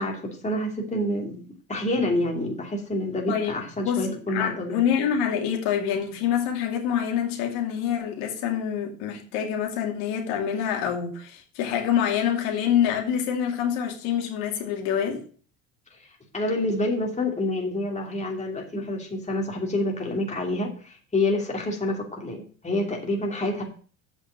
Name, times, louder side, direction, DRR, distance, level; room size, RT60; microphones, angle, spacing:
voice 1, 0.0-1.4 1.7-4.8 16.3-23.6, left 1 dB, 15° left, 2.8 m, -27 dB
voice 2, 3.8-15.2, left 9 dB, 75° left, 2.5 m, -26 dB
7.8 x 5.7 x 7.6 m
supercardioid pair, 105°, 39 cm